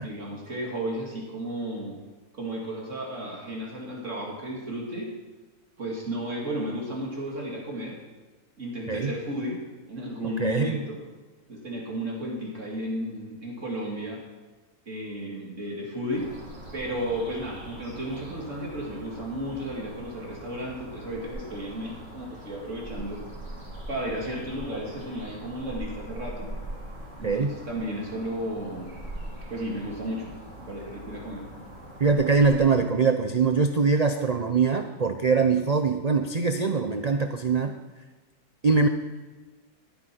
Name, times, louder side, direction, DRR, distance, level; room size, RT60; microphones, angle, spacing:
voice 1, 0.0-2.0 2.3-5.1 5.8-8.0 8.6-9.6 9.9-11.0 11.5-14.2 14.9-16.3 16.7-23.2 23.9-26.5 27.2-29.0 29.5-30.3 30.7-31.4, right 1 dB, 50° right, -2 dB, 2.6 m, -33 dB
voice 2, 10.4-10.8 27.2-27.5 32.0-37.7 38.6-38.9, right 4 dB, 75° right, 6 dB, 0.3 m, -23 dB
sound 1, 16.1-32.7, right 1 dB, 30° right, 3.7 m, -42 dB
14.0 x 9.6 x 4.4 m, 1.3 s
omnidirectional pair, 1.6 m